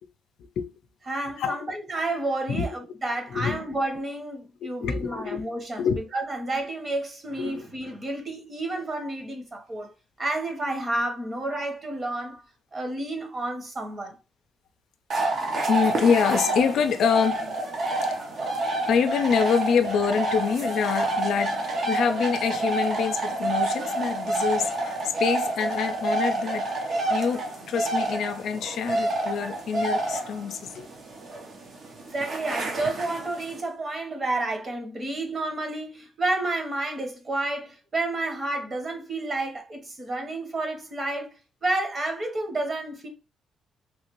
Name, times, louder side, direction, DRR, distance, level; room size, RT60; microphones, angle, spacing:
voice 1, 1.1-9.9 10.2-12.4 12.7-14.2 32.1-43.1, right 2 dB, 35° right, 1.1 m, -30 dB
voice 2, 3.3-3.6 4.8-5.4 5.8-6.0 7.4-7.6 15.7-17.6 18.9-30.9, left 6 dB, 75° left, 0.4 m, -26 dB
sound 1, 15.1-33.6, right 2 dB, 55° right, 0.8 m, -28 dB
3.2 x 2.5 x 3.0 m
cardioid pair, 90°, 0 cm